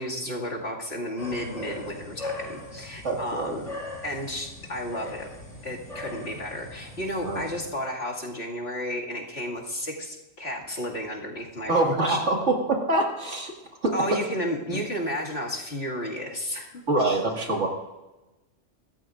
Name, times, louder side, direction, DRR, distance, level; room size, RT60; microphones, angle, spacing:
voice 1, 0.0-3.7 4.0-5.3 5.6-12.2 13.9-17.2, equal, 55° left, -3 dB, 2.6 m, -32 dB
sound 1, 1.2-7.7, left 2 dB, 30° left, 5.1 m, -40 dB
voice 2, 3.0-3.6 7.2-7.4 11.7-13.5 13.8-14.2 14.7-14.8 16.9-17.7, right 2 dB, 65° right, 1 dB, 2.4 m, -25 dB
25.0 x 13.5 x 2.6 m, 1.1 s
omnidirectional pair, 1.3 m